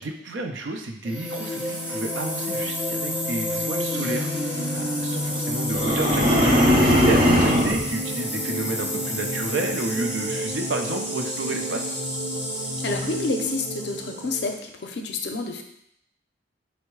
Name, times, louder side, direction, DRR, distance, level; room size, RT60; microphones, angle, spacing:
voice 1, 0.0-4.3 4.7-6.4 6.8-11.9, right 2 dB, 80° right, 4 dB, 0.5 m, -31 dB
sound 1, 1.0-14.5, equal, 5° right, 0.6 m, -29 dB
sound 2, 5.7-7.8, equal, 50° right, 0.7 m, -19 dB
voice 2, 12.8-15.6, left 3 dB, 60° left, 4 dB, 0.5 m, -29 dB
4.5 x 2.0 x 4.5 m, 0.73 s
head